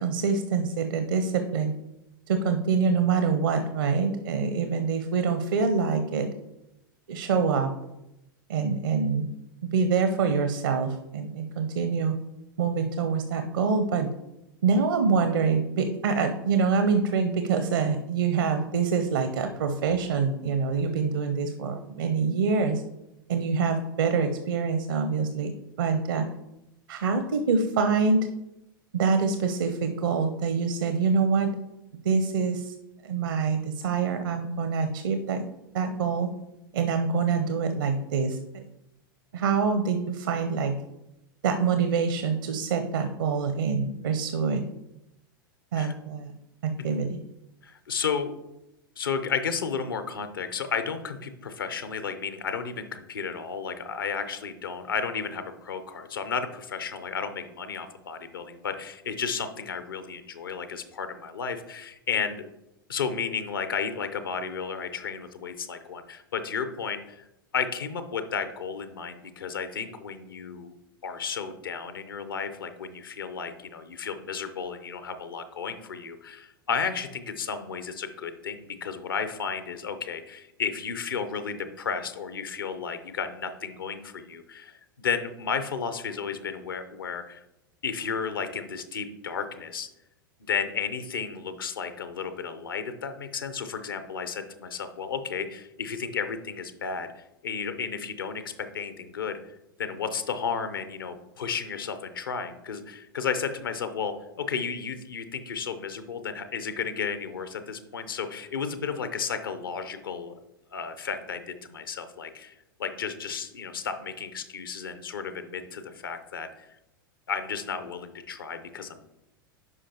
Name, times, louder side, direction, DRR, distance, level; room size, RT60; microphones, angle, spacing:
voice 1, 0.0-1.7 2.3-6.3 7.1-7.7 8.5-9.3 9.7-12.2 12.6-14.1 14.6-22.8 23.3-25.5 25.8-26.3 26.9-28.3 28.9-31.5 32.0-32.7 33.0-35.5 35.7-36.3 36.7-38.6 39.3-40.8 41.4-44.7 45.7-46.3 46.6-47.2, right 5 dB, 65° right, 8 dB, 0.7 m, -25 dB
voice 2, 47.6-48.3 49.0-62.4 62.9-67.3 67.5-70.8 71.0-87.4 87.8-89.9 90.4-110.3 110.7-112.5 112.8-116.7 117.3-119.1, left 6 dB, 70° left, 10 dB, 0.8 m, -33 dB
11.0 x 4.9 x 2.9 m, 0.89 s
figure-of-eight pair, 95°, 12 cm